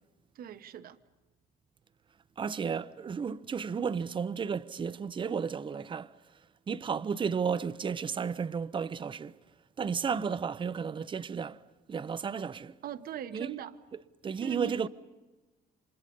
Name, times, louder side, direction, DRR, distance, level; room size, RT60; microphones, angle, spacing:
voice 1, 0.3-1.0 12.8-13.8 14.4-14.9, right 10 dB, 60° right, 1.2 m, -40 dB
voice 2, 2.4-6.1 6.7-9.3 9.8-11.6 11.9-12.8 13.3-13.5 14.2-14.9, right 6 dB, 30° right, 0.7 m, -33 dB
30.0 x 26.0 x 5.4 m
cardioid pair, 110°, 17 cm